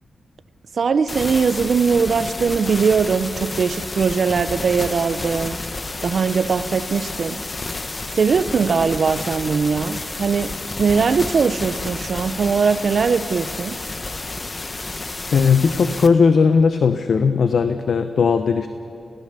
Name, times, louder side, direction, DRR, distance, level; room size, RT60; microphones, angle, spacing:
voice 1, 0.8-5.6 6.0-7.4 8.1-13.8, right 5 dB, 55° right, 12 dB, 0.8 m, -20 dB
sound 1, 1.1-16.1, left 3 dB, 30° left, 1.0 m, -30 dB
voice 2, 15.3-18.7, left 5 dB, 65° left, 9 dB, 0.8 m, -17 dB
30.0 x 16.5 x 6.9 m, 2.8 s
wide cardioid pair, 115°, 0 cm